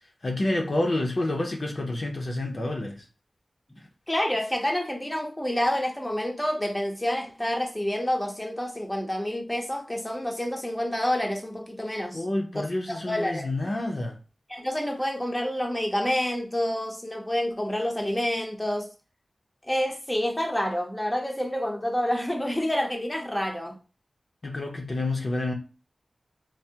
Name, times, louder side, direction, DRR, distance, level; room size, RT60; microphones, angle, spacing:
voice 1, 0.2-3.1 12.1-14.2 24.4-25.5, left 2 dB, 55° left, 0.6 m, -28 dB
voice 2, 4.1-12.2 12.9-13.5 14.5-18.9 19.7-23.8, left 1 dB, 10° left, 0.6 m, -28 dB
3.4 x 2.0 x 2.7 m
wide cardioid pair, 65°, 0 cm